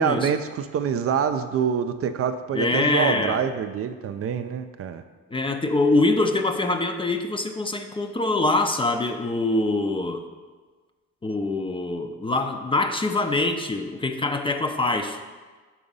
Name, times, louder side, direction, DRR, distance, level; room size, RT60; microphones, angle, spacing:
voice 1, 0.0-5.0, right 7 dB, 50° right, 9 dB, 0.4 m, -26 dB
voice 2, 2.5-3.4 5.3-10.2 11.2-15.2, left 2 dB, 15° left, 6 dB, 0.5 m, -24 dB
6.1 x 3.8 x 5.4 m, 1.4 s
cardioid pair, 90°, 30 cm